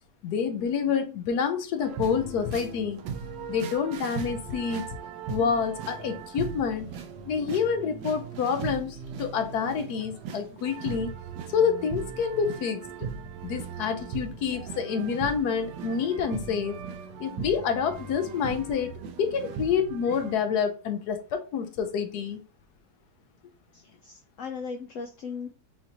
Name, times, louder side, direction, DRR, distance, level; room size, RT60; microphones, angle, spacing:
voice 1, 0.2-3.0 3.5-4.9 5.3-6.9 7.3-11.1 11.5-12.8 13.4-16.8 17.2-18.9 19.2-22.4, left 6 dB, 70° left, 1.1 m, -28 dB
sound 1, 1.8-20.3, right 6 dB, 75° right, 1.3 m, -38 dB
voice 2, 23.7-25.5, left 5 dB, 85° left, 0.6 m, -38 dB
5.7 x 2.6 x 2.9 m
omnidirectional pair, 1.9 m